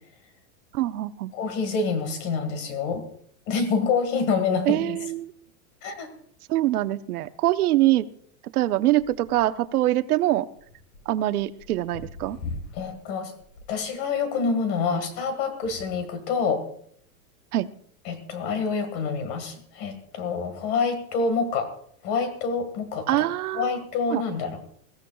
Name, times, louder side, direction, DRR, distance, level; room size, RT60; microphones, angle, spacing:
voice 1, 0.7-1.3 4.7-5.3 6.5-8.1 8.5-10.5 11.1-12.4 17.5-17.7 23.1-23.8 24.1-24.2, right 15 dB, 90° right, 11 dB, 0.9 m, -24 dB
voice 2, 1.3-3.0 3.5-5.0 5.8-6.1 12.7-13.3 13.7-16.7 18.1-21.7 22.0-23.3 23.6-24.6, left 5 dB, 30° left, 9 dB, 1.8 m, -27 dB
sound 1, 9.0-9.8 10.6-13.0 13.4-13.8 14.9-16.2 17.0-17.1, left 3 dB, 60° left, 6.9 m, -41 dB
21.5 x 15.0 x 2.3 m, 0.63 s
supercardioid pair, 175°, 44 cm